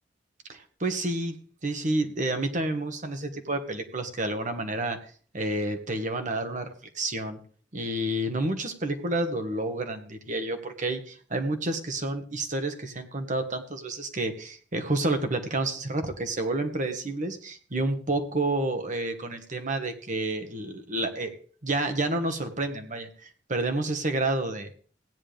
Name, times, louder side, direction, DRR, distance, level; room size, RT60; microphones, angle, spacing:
voice 1, 0.5-1.4 1.6-5.0 5.3-7.4 7.7-21.3 21.6-24.7, right 2 dB, 45° right, 7 dB, 1.6 m, -29 dB
16.5 x 9.8 x 3.4 m, 0.44 s
head